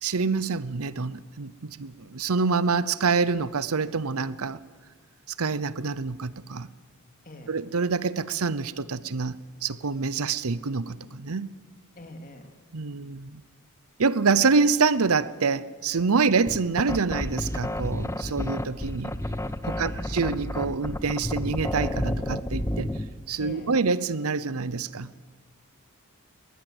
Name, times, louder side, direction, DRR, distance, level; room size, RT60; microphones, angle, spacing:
voice 1, 0.0-4.6 5.4-6.7 7.5-9.4 9.6-11.5 12.7-13.4 14.0-19.1 19.6-22.9 23.3-25.1, right 4 dB, 75° right, 18 dB, 0.8 m, -26 dB
voice 2, 12.0-12.5 19.7-20.1 23.4-23.7, left 1 dB, 40° left, 5 dB, 2.7 m, -42 dB
sound 1, 16.5-23.1, left 1 dB, 10° left, 0.9 m, -30 dB
21.0 x 19.5 x 7.9 m, 1.5 s
head